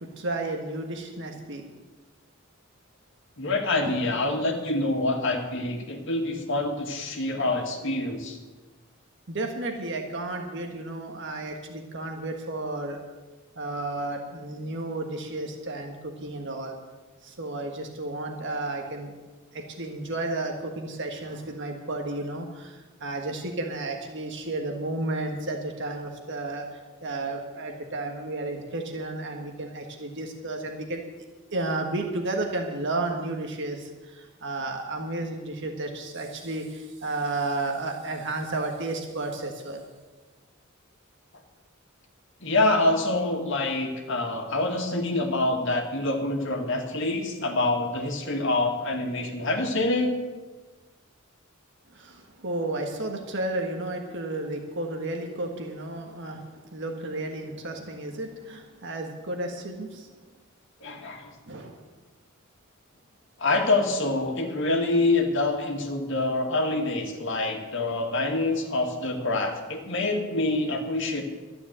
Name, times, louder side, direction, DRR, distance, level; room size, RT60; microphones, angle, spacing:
voice 1, 0.0-1.7 3.8-4.0 9.3-13.0 13.5-16.7 17.2-19.1 19.5-31.0 31.5-39.8 51.9-60.1 61.4-61.8, right 2 dB, 60° right, 3 dB, 1.6 m, -32 dB
voice 2, 3.4-8.4 42.4-50.1 60.8-61.3 63.4-71.2, left 2 dB, 65° left, 2 dB, 2.2 m, -26 dB
12.5 x 10.5 x 7.6 m, 1.3 s
head